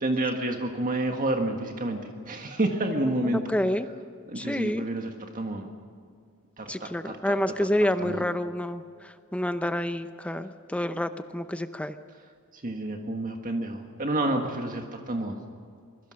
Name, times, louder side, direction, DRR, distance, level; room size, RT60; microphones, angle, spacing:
voice 1, 0.0-3.4 4.3-5.7 6.6-7.4 8.0-8.2 12.5-15.4, right 1 dB, 40° right, 3 dB, 1.7 m, -29 dB
voice 2, 3.2-3.9 4.4-4.9 6.7-11.9, left 1 dB, 5° left, 9 dB, 0.7 m, -28 dB
25.0 x 22.0 x 6.4 m, 2.3 s
head